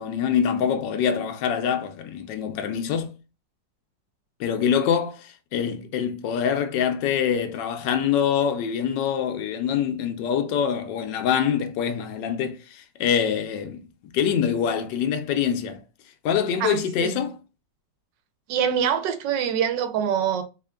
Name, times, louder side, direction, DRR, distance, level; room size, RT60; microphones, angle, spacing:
voice 1, 0.0-3.1 4.4-13.8 14.1-15.8 16.2-17.4, left 8 dB, 80° left, 1.2 m, -25 dB
voice 2, 16.6-17.3 18.5-20.4, right 8 dB, 80° right, 1.3 m, -25 dB
3.6 x 3.4 x 2.2 m
omnidirectional pair, 1.9 m